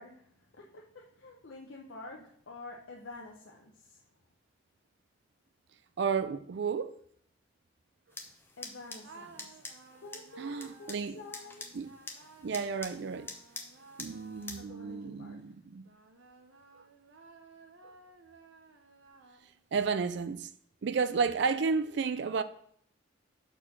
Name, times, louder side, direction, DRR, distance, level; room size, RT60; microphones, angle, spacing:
voice 1, 0.0-4.0 8.6-9.6 10.0-11.7 14.6-15.4, left 2 dB, 80° left, 0.9 m, -49 dB
voice 2, 6.0-7.0 10.4-11.2 11.7-11.9 12.4-13.3 14.0-15.8 19.7-20.5 20.8-22.4, right 5 dB, 65° right, 0.4 m, -32 dB
sound 1, 8.1-14.6, left 3 dB, 10° left, 0.7 m, -47 dB
sound 2, 9.0-15.3 15.8-19.8, right 3 dB, 90° right, 0.9 m, -57 dB
6.4 x 4.5 x 6.0 m
head